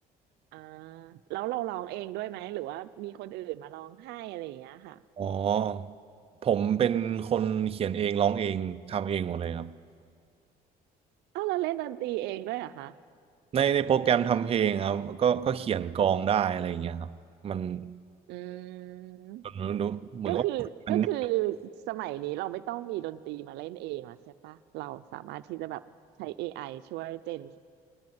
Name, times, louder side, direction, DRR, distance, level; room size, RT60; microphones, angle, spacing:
voice 1, 0.5-5.0 11.3-13.0 18.3-19.4 20.3-25.8 26.2-27.6, right 16 dB, 90° right, 0.6 m, -35 dB
voice 2, 5.2-5.9 6.4-9.7 13.5-17.1 17.4-18.0 19.5-20.4 20.9-21.1, right 8 dB, 35° right, 0.5 m, -27 dB
20.0 x 18.5 x 9.6 m
cardioid pair, 110°, 17 cm